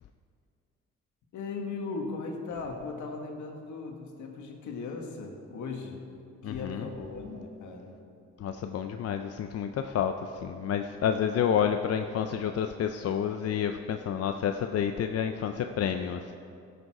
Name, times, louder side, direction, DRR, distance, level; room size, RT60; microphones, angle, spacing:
voice 1, 1.3-6.0 6.4-7.9, left 4 dB, 75° left, 2 dB, 1.7 m, -38 dB
voice 2, 6.4-6.9 8.4-10.1 10.4-16.3, left 8 dB, 55° left, 7 dB, 0.6 m, -29 dB
15.5 x 6.8 x 4.8 m, 2.6 s
cardioid pair, 90°, 30 cm